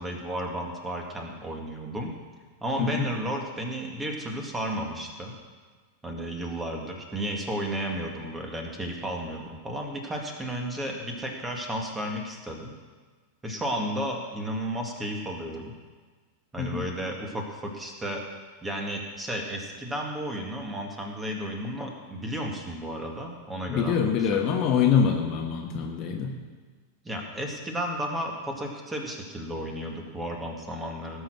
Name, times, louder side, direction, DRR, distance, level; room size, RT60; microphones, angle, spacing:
voice 1, 0.0-2.1 2.6-5.4 6.0-12.7 13.4-15.7 16.5-18.2 18.6-24.0 24.3-24.4 27.0-31.2, equal, 10° right, 1 dB, 2.2 m, -33 dB
voice 2, 23.7-26.3, left 7 dB, 40° left, 2 dB, 1.4 m, -24 dB
18.5 x 6.5 x 6.3 m, 1.4 s
figure-of-eight pair, 90°, 0 cm